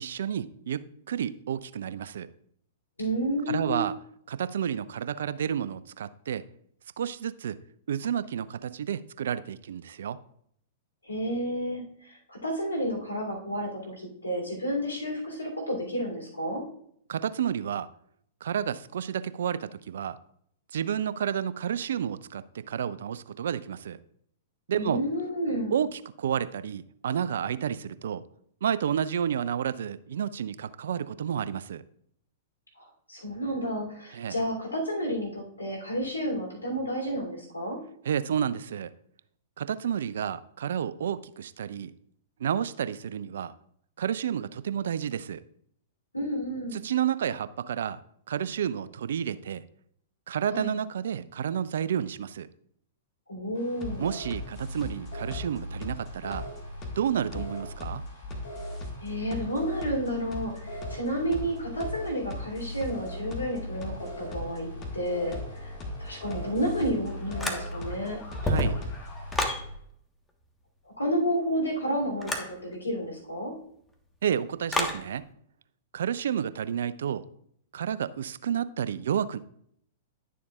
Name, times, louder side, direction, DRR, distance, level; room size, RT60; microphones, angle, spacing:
voice 1, 0.0-2.3 3.5-3.9 4.3-6.4 7.0-7.6 7.9-10.2 17.1-17.9 18.4-20.2 20.7-24.0 24.7-25.0 25.7-28.2 28.6-31.8 34.1-34.4 38.0-38.9 39.6-41.9 42.4-43.5 44.0-45.4 46.7-48.0 48.3-49.6 50.3-52.5 54.0-56.5 57.0-58.0 68.4-68.8 74.2-75.2 75.9-77.3 77.7-79.4, right 9 dB, 65° right, 0.4 m, -30 dB
voice 2, 3.0-3.8 11.0-13.9 14.2-16.6 24.7-25.7 33.1-37.8 46.1-46.8 50.5-50.7 53.3-54.0 59.0-65.7 66.0-68.2 71.0-73.5, equal, 90° left, 3.1 m, -31 dB
sound 1, 53.5-69.5, right 1 dB, 70° left, 3.1 m, -45 dB
sound 2, 53.8-69.8, left 2 dB, 30° left, 1.8 m, -38 dB
sound 3, 67.4-68.0 68.3-69.6 72.2-72.5 74.7-75.0, left 1 dB, 10° left, 1.3 m, -29 dB
11.0 x 7.0 x 2.4 m
figure-of-eight pair, 105°, 0 cm